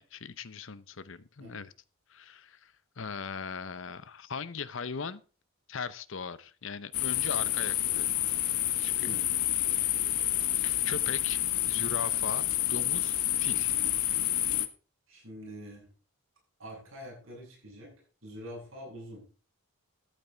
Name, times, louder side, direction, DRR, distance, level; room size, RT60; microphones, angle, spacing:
voice 1, 0.0-1.7 2.1-5.2 5.7-8.1 8.8-9.2 9.8-9.9 10.6-13.7, left 5 dB, 60° left, 0.7 m, -39 dB
sound 1, 6.9-14.7, left 13 dB, 80° left, 1.1 m, -29 dB
voice 2, 9.0-9.3 15.1-15.9 16.6-17.9 18.2-19.2, equal, 65° right, 7.8 m, -45 dB
13.5 x 8.8 x 3.9 m
head